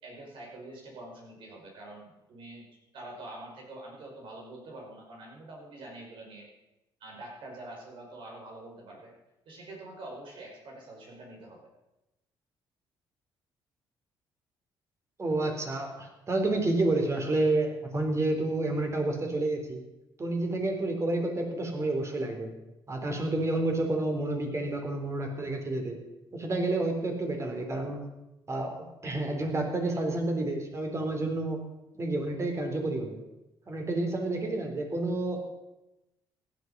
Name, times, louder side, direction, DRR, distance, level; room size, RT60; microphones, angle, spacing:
voice 1, 0.0-6.5 7.0-9.1 9.5-11.6, right 2 dB, 70° right, 0 dB, 5.1 m, -45 dB
voice 2, 15.2-19.8 20.2-22.5 22.9-26.0 26.3-28.0 28.5-28.8 29.0-31.6 32.0-33.2 33.7-35.4, right 2 dB, 30° right, 3 dB, 3.6 m, -29 dB
15.5 x 11.0 x 5.4 m, 0.96 s
cardioid pair, 95°, 9 cm